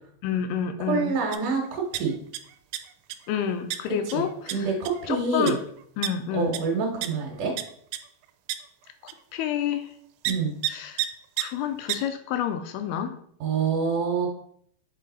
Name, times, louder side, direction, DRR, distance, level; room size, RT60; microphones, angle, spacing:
voice 1, 0.2-1.2 3.3-4.7 5.1-5.6 6.0-6.6 9.3-9.9 10.7-11.0 11.4-13.2, left 8 dB, 80° left, 8 dB, 2.4 m, -29 dB
voice 2, 0.9-2.2 4.1-4.3 4.5-5.6 6.3-7.5 10.3-10.5 13.4-14.3, right 4 dB, 65° right, -1 dB, 2.3 m, -26 dB
sound 1, 1.3-1.5 1.7-2.4 2.7-3.1 3.7-3.8 4.1-4.2 4.5-4.6 4.9-5.0 5.5-5.6 6.0-6.1 6.5-6.6 7.0-7.1 7.6-7.7 7.9-8.0 8.5-8.6 9.1-9.2 10.2-10.3 10.6-10.7 11.0-11.1 11.4-11.5 11.9-12.0, right 14 dB, 85° right, 2.5 m, -28 dB
7.6 x 3.8 x 4.0 m, 0.63 s
omnidirectional pair, 4.6 m